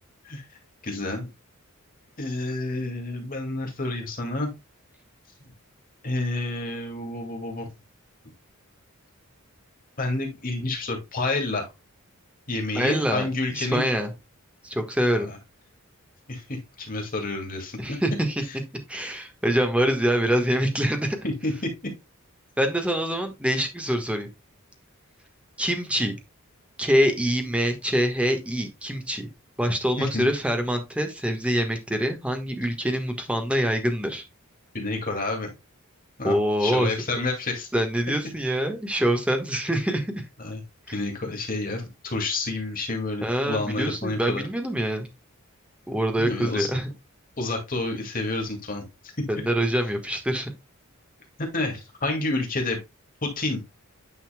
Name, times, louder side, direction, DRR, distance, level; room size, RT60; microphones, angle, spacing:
voice 1, 0.8-1.3 2.2-4.5 6.0-7.7 10.0-11.7 12.5-13.8 15.2-15.4 16.3-18.0 21.2-21.5 21.8-21.9 30.0-30.3 34.7-35.5 36.2-37.7 40.4-40.6 40.9-44.4 46.2-46.7 47.4-48.8 51.4-52.8 53.2-53.6, left 2 dB, 40° left, 2 dB, 2.1 m, -29 dB
voice 2, 12.7-13.3 13.5-14.1 14.6-15.3 17.8-18.4 18.9-21.2 22.6-24.3 25.6-26.1 26.8-29.3 29.6-34.2 36.2-36.9 37.7-40.2 40.9-41.0 43.2-45.1 45.9-46.9 49.3-50.5, equal, 5° right, 5 dB, 1.3 m, -25 dB
9.4 x 5.6 x 2.2 m, 0.23 s
head